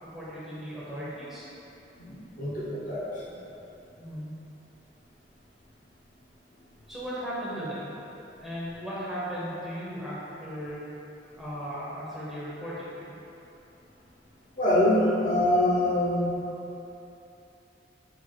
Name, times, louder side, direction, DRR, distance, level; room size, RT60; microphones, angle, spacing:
voice 1, 0.0-1.5 4.0-4.4 6.9-8.0 8.4-10.9 11.4-13.1, equal, ahead, -9 dB, 0.9 m, -36 dB
voice 2, 2.0-3.4 14.6-16.4, left 1 dB, 50° left, -7 dB, 0.7 m, -25 dB
4.5 x 4.4 x 2.3 m, 3.0 s
head